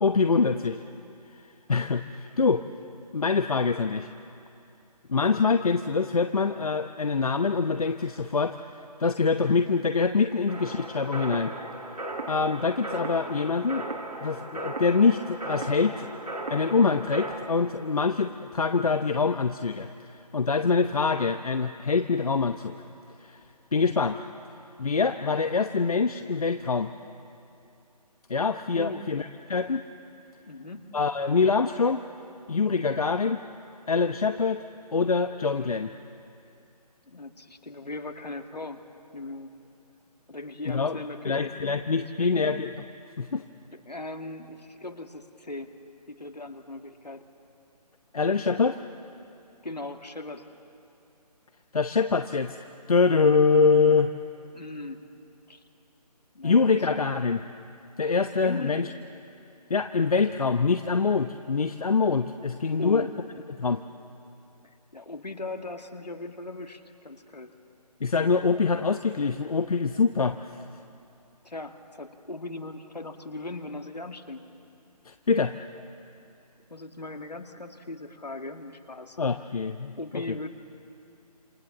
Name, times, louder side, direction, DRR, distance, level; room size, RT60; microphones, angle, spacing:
voice 1, 0.0-0.8 1.7-2.6 3.1-4.1 5.1-11.5 12.3-13.9 14.2-16.1 16.5-22.7 23.2-23.4 23.7-24.2 24.8-26.9 28.3-29.8 30.9-32.0 32.5-33.4 33.9-34.6 34.9-35.9 40.7-41.0 41.2-42.7 43.2-43.4 48.1-48.8 51.7-54.1 56.4-57.4 58.0-58.9 59.7-63.0 63.6-63.8 68.0-70.6 75.1-75.5 79.2-80.2, left 4 dB, 60° left, 8 dB, 0.9 m, -24 dB
sound 1, 10.5-17.3, right 2 dB, 75° right, 4.1 m, -36 dB
voice 2, 30.5-30.8 37.1-38.8 39.1-39.5 40.3-41.7 42.0-42.5 43.7-45.7 46.1-47.2 49.6-50.5 54.5-55.1 55.5-55.6 56.3-56.7 58.3-58.7 62.8-63.1 64.6-67.5 71.4-74.5 76.7-79.2 80.0-80.5, left 2 dB, 80° left, 5 dB, 2.3 m, -38 dB
28.0 x 26.5 x 7.3 m, 2.7 s
figure-of-eight pair, 150°, 21 cm